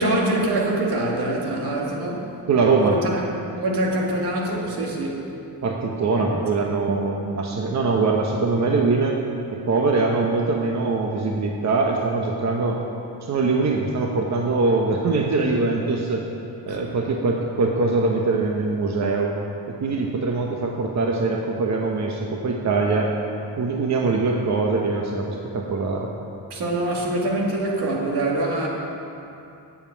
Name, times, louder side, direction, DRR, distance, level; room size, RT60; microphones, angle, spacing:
voice 1, 0.0-2.3 2.8-3.2 3.6-5.3 6.2-6.3 16.7-16.8 26.5-28.7, right 1 dB, 70° right, -2 dB, 2.2 m, -24 dB
voice 2, 2.5-3.0 5.6-9.2 9.5-12.8 13.3-16.2 16.6-19.4 19.7-23.1 23.6-26.1, right 3 dB, 40° right, 0 dB, 1.0 m, -22 dB
9.0 x 7.2 x 8.5 m, 2.7 s
cardioid pair, 110°, 41 cm